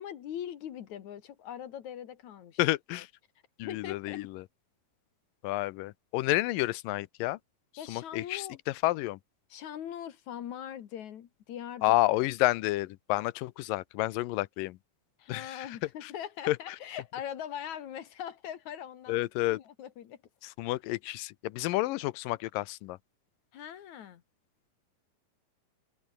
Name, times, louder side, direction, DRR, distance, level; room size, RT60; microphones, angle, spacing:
voice 1, 0.0-2.6 2.9-3.0 3.6-4.2 7.8-8.6 9.5-12.3 15.2-20.2 23.5-24.2, left 10 dB, 60° left, 2.6 m, -41 dB
voice 2, 2.6-3.1 3.6-4.4 5.4-7.4 7.9-9.2 11.8-14.8 15.3-15.7 16.0-16.1 16.5-16.6 19.1-19.6 20.6-23.0, left 18 dB, 80° left, 2.3 m, -30 dB
omnidirectional pair, 4.1 m